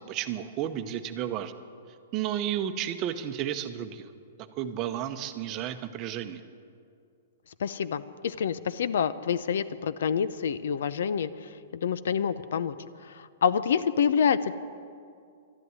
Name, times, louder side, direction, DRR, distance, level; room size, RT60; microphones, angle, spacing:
voice 1, 0.1-1.5 2.1-4.1 4.5-6.4, right 10 dB, 30° right, 9 dB, 0.8 m, -32 dB
voice 2, 7.6-12.7 13.0-14.5, left 7 dB, 75° left, 15 dB, 0.6 m, -27 dB
12.5 x 11.0 x 9.6 m, 2.3 s
hypercardioid pair, 155°, 0 cm